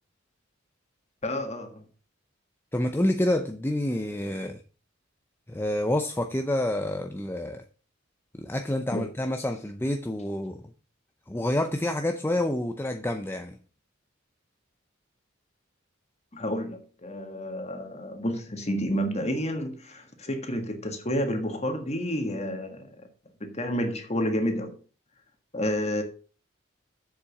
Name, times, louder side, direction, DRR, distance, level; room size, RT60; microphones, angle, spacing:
voice 1, 1.2-1.8 8.9-9.0 16.3-22.9 23.4-24.8 25.5-26.0, equal, 35° left, 1.7 m, -30 dB
voice 2, 2.7-4.6 5.5-7.6 8.4-10.6 11.3-13.6, left 1 dB, 10° left, 0.6 m, -28 dB
7.5 x 7.0 x 5.9 m
head